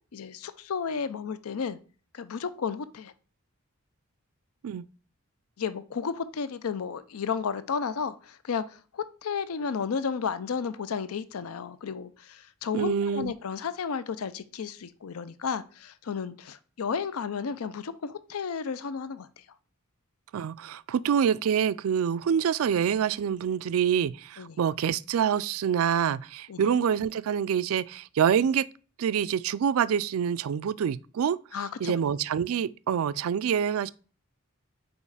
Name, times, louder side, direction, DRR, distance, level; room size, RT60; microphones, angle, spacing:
voice 1, 0.1-1.8 2.1-3.1 5.6-19.3 24.4-24.6 26.5-26.7 31.5-31.9, left 6 dB, 85° left, 0.5 m, -33 dB
voice 2, 12.7-13.3 20.3-28.7 29.0-31.4 31.8-33.9, right 8 dB, 70° right, 0.3 m, -26 dB
5.3 x 4.6 x 4.8 m
head